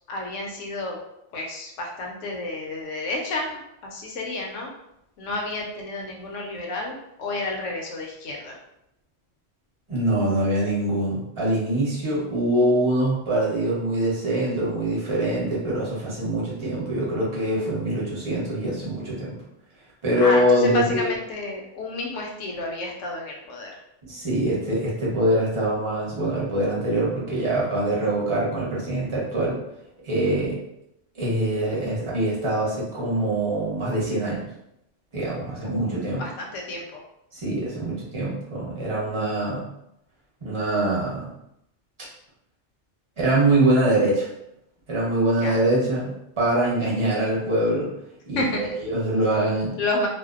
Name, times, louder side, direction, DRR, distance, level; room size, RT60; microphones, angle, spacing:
voice 1, 0.1-1.0 1.3-4.7 5.2-8.6 20.2-23.7 35.6-35.8 36.2-37.0 45.4-45.6 48.4-48.6 49.8-50.1, left 2 dB, 80° left, 0 dB, 1.0 m, -30 dB
voice 2, 9.9-19.4 20.0-21.1 24.1-29.6 30.0-30.6 31.1-34.4 35.1-36.2 37.3-39.7 40.4-41.3 43.2-44.3 44.9-47.9 48.3-49.7, right 1 dB, 30° right, -6 dB, 0.8 m, -24 dB
2.5 x 2.0 x 2.4 m, 0.81 s
omnidirectional pair, 1.2 m